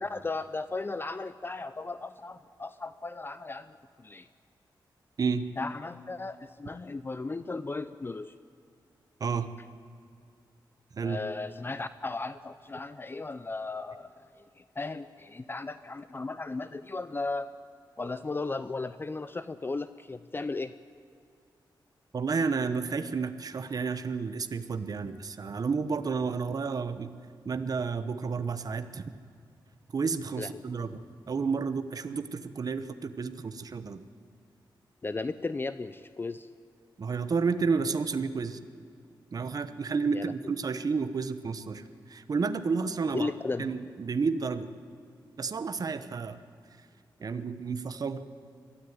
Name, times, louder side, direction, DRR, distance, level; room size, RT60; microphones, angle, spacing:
voice 1, 0.0-4.3 5.6-8.3 11.0-17.5 18.0-20.7 30.4-30.6 35.0-36.5 40.1-40.3 43.1-43.7, left 3 dB, 25° left, 13 dB, 0.6 m, -36 dB
voice 2, 22.1-27.1 27.4-29.1 29.9-34.0 37.0-38.6 39.3-43.3 43.6-44.7 45.4-46.4 47.2-48.2, right 5 dB, 50° right, 10 dB, 1.0 m, -31 dB
22.5 x 13.0 x 9.5 m, 2.3 s
wide cardioid pair, 100°, 8 cm